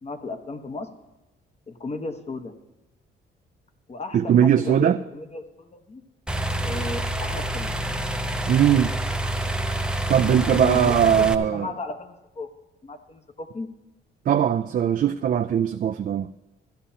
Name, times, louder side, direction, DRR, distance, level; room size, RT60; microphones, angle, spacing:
voice 1, 0.0-0.9 1.7-2.5 3.9-6.0 6.6-7.8 10.1-12.5 12.8-13.7, left 3 dB, 35° left, 1.1 m, -35 dB
voice 2, 4.1-5.0 8.5-8.9 10.1-11.7 14.3-16.3, right 9 dB, 45° right, 0.4 m, -20 dB
sound 1, 6.3-11.3, right 1 dB, 5° right, 0.6 m, -27 dB
15.5 x 11.5 x 2.8 m
cardioid pair, 90°, 20 cm